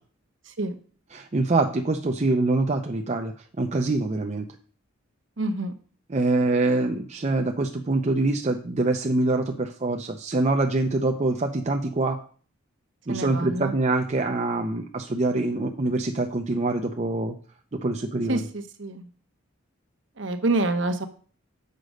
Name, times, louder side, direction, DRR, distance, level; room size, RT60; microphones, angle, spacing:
voice 1, 1.1-4.5 6.1-12.2 13.1-17.4 17.8-18.4, right 2 dB, 35° right, 4 dB, 0.6 m, -25 dB
voice 2, 5.4-5.7 13.1-13.7 18.3-19.1 20.2-21.1, right 2 dB, 60° right, 6 dB, 1.0 m, -27 dB
6.7 x 5.1 x 6.4 m, 0.43 s
head